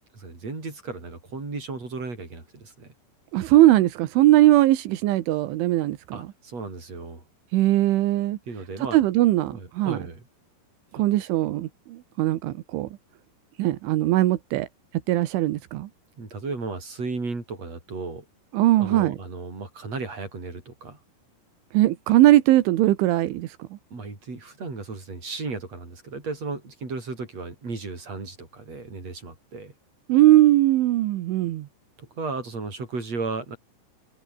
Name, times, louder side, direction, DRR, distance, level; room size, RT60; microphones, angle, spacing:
voice 1, 0.0-2.9 6.1-7.2 8.5-9.0 9.5-10.2 16.2-18.2 18.8-21.0 23.9-29.7 32.0-33.6, right 3 dB, 35° right, 8.0 m, -35 dB
voice 2, 3.3-6.2 7.5-8.4 8.9-10.0 11.0-12.9 13.6-14.7 15.1-15.9 18.5-19.2 21.7-23.7 30.1-31.7, right 15 dB, 85° right, 3.8 m, -20 dB
omnidirectional pair, 5.3 m